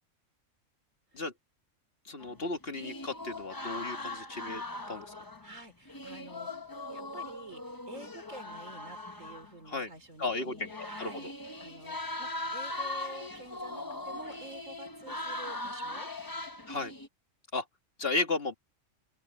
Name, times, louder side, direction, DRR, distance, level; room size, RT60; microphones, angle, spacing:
voice 1, 2.1-4.6 4.9-5.1 9.7-9.9 10.2-11.3 16.7-16.9 17.5-17.7 18.0-18.5, left 3 dB, 50° left, 2.1 m, -34 dB
sound 1, 2.2-5.6 5.9-9.5 10.3-17.1, left 2 dB, 15° left, 1.2 m, -40 dB
voice 2, 5.4-6.5 6.9-11.3 11.6-16.1, right 2 dB, 80° right, 4.0 m, -49 dB
open air
omnidirectional pair, 1.3 m